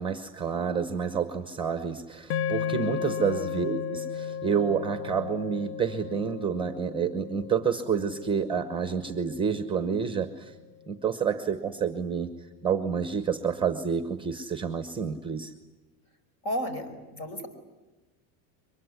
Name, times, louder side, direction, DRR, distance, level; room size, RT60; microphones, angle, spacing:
voice 1, 0.0-10.5 10.9-12.3 12.6-15.5, right 6 dB, 10° right, 9 dB, 0.9 m, -29 dB
sound 1, 2.3-10.7, left 7 dB, 65° left, 0.9 m, -35 dB
voice 2, 3.0-3.5 16.4-17.5, equal, 50° left, 10 dB, 5.2 m, -34 dB
23.5 x 21.0 x 9.6 m, 1.1 s
supercardioid pair, 155°, 47 cm